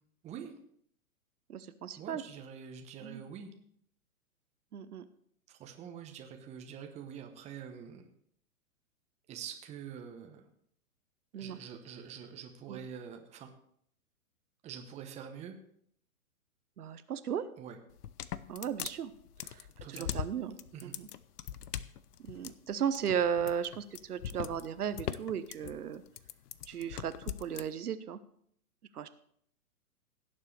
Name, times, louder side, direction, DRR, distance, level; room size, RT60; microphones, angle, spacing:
voice 1, 0.2-0.5 2.0-3.5 5.5-8.1 9.3-10.5 11.3-13.5 14.6-15.6 17.6-17.8 19.8-20.2 20.7-21.0, right 8 dB, 15° right, 5 dB, 0.9 m, -45 dB
voice 2, 1.5-2.2 3.0-3.2 4.7-5.1 11.3-11.6 12.7-12.8 16.8-17.4 18.5-19.1 19.4-20.6 20.8-21.1 22.2-26.0 26.7-28.2 28.9-29.1, right 8 dB, 80° right, 12 dB, 1.0 m, -35 dB
sound 1, 17.9-27.7, left 10 dB, 80° left, 0.7 m, -41 dB
17.0 x 7.6 x 3.3 m, 0.66 s
hypercardioid pair, 130°, 45 cm